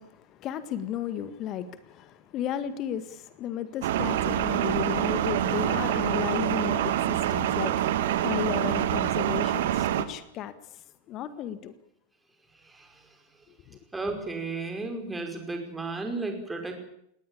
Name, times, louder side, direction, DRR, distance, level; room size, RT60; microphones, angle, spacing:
voice 1, 0.0-10.8 11.1-11.7 13.7-13.8, left 10 dB, 35° left, 1.6 m, -34 dB
sound 1, 3.8-10.0, right 11 dB, 55° right, 1.6 m, -26 dB
voice 2, 12.6-13.1 13.9-16.7, right 3 dB, 10° right, 5.3 m, -34 dB
19.0 x 19.0 x 8.7 m
figure-of-eight pair, 90°, 0 cm